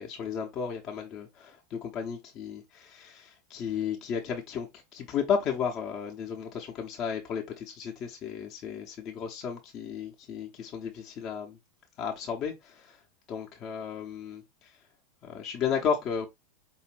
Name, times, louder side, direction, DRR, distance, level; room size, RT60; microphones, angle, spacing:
voice 1, 0.0-4.7 4.9-11.6 12.0-13.0 13.3-14.8 15.2-16.3, left 7 dB, 40° left, 0.8 m, -34 dB
5.0 x 2.6 x 3.1 m
figure-of-eight pair, 85°, 0 cm